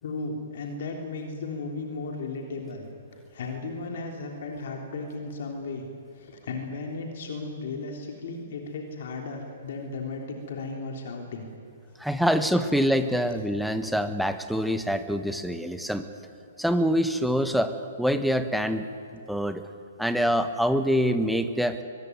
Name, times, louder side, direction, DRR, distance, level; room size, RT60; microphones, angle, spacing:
voice 1, 0.0-2.9 3.3-5.9 6.1-11.5, left 3 dB, 50° left, 1 dB, 3.4 m, -35 dB
voice 2, 12.0-16.1 16.6-18.8 19.3-19.6 20.0-21.8, equal, ahead, 9 dB, 1.4 m, -25 dB
23.5 x 20.0 x 9.6 m, 2.5 s
figure-of-eight pair, 120°, 0 cm